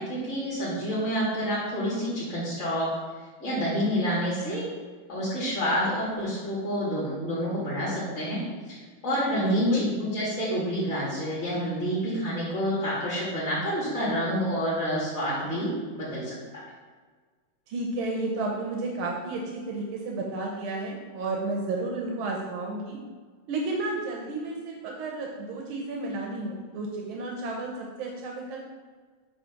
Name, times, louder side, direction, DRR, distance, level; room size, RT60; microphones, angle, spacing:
voice 1, 0.0-2.9 3.4-4.6 5.1-8.4 8.7-8.8 9.0-16.6, equal, 35° left, -10 dB, 2.2 m, -28 dB
voice 2, 9.3-9.9 17.7-23.0 23.5-28.6, right 2 dB, 85° right, -1 dB, 1.7 m, -32 dB
8.4 x 3.1 x 5.8 m, 1.5 s
omnidirectional pair, 2.2 m